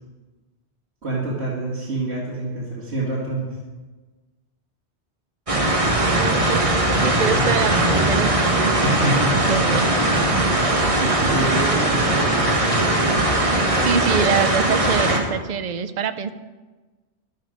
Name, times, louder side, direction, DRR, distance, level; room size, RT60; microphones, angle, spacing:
voice 1, 1.0-3.5 8.8-9.8 10.3-12.6, right 2 dB, 70° right, -7 dB, 2.5 m, -27 dB
sound 1, 5.5-15.2, right 1 dB, 30° right, 1.5 m, -20 dB
voice 2, 6.0-10.0 13.8-16.3, right 6 dB, 45° right, 11 dB, 0.7 m, -25 dB
11.5 x 11.0 x 5.1 m, 1.2 s
omnidirectional pair, 1.1 m